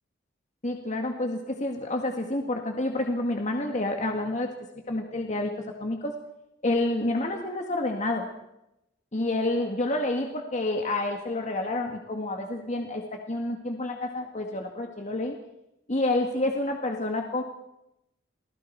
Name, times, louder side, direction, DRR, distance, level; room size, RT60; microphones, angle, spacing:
voice 1, 0.6-4.5 4.9-5.5 5.8-6.1 6.6-8.3 9.1-15.4 15.9-17.4, left 2 dB, 40° left, 3 dB, 2.0 m, -28 dB
29.0 x 19.5 x 4.7 m, 0.87 s
head